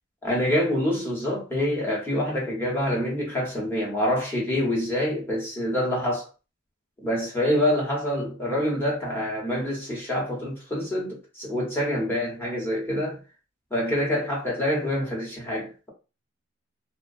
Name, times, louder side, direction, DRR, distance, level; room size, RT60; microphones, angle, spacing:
voice 1, 0.2-6.2 7.0-13.2 13.7-15.9, left 1 dB, 10° left, 0.9 m, -26 dB
2.4 x 2.2 x 2.5 m
head